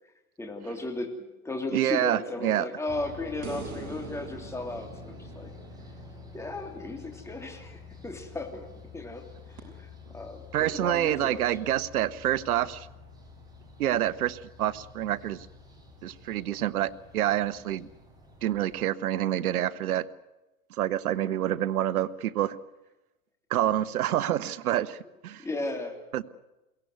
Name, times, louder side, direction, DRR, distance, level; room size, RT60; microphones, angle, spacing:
voice 1, 0.4-5.5 6.3-8.7 8.9-11.6 21.1-21.4 25.4-26.0, left 2 dB, 5° left, 3 dB, 3.1 m, -36 dB
voice 2, 1.7-2.7 10.5-12.9 13.8-15.5 16.0-17.9 18.4-20.1 20.8-22.6 23.5-25.4 26.1-26.2, right 12 dB, 75° right, 15 dB, 1.2 m, -27 dB
sound 1, 2.9-18.9, left 3 dB, 10° right, 5.2 m, -48 dB
sound 2, 3.4-6.7 9.6-9.7, right 4 dB, 45° right, 6.0 m, -43 dB
22.5 x 18.0 x 9.5 m, 1.0 s
hypercardioid pair, 135°, 44 cm